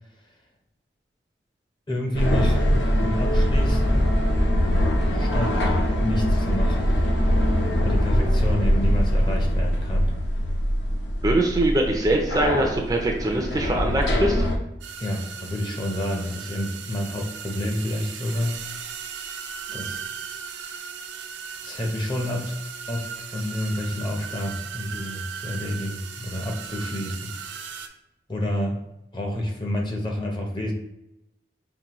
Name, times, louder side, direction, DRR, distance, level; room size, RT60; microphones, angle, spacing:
voice 1, 1.9-4.1 5.1-5.6 6.0-7.0 7.8-10.1 15.0-18.6 19.7-20.0 21.6-22.5 22.9-27.7 28.3-28.8 29.1-30.7, left 1 dB, 25° left, 1 dB, 0.6 m, -29 dB
sound 1, 2.1-14.6, equal, 75° left, 0.6 m, -22 dB
voice 2, 11.2-14.5, right 1 dB, 20° right, 2 dB, 0.4 m, -23 dB
sound 2, 14.8-27.9, right 7 dB, 85° right, 0.4 m, -37 dB
5.2 x 2.7 x 3.0 m, 0.88 s
head